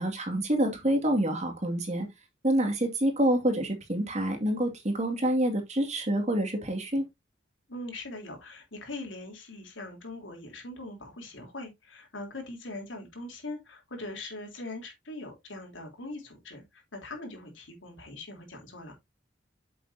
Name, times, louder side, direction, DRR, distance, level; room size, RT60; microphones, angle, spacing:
voice 1, 0.0-2.1 2.4-7.1, right 1 dB, 35° right, 2.3 m, -27 dB
voice 2, 7.7-18.9, left 2 dB, 80° left, 3.6 m, -41 dB
7.8 x 7.6 x 2.8 m
head